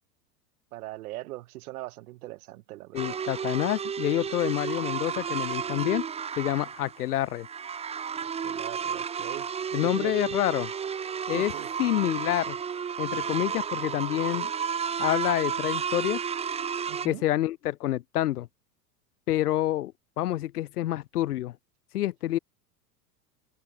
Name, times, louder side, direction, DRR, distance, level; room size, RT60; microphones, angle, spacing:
voice 1, 0.7-3.2 8.4-9.5 9.8-10.1 11.3-11.7 16.9-17.2, right 17 dB, 60° right, 4.1 m, -40 dB
voice 2, 2.9-6.0 6.4-7.5 9.7-10.7 11.3-11.5 11.8-12.6 13.0-14.5 15.0-16.2 17.0-18.5 19.3-21.5 21.9-22.4, left 14 dB, 65° left, 1.9 m, -27 dB
sound 1, 3.0-17.1, right 7 dB, 15° right, 0.7 m, -32 dB
open air
figure-of-eight pair, 90°, 49 cm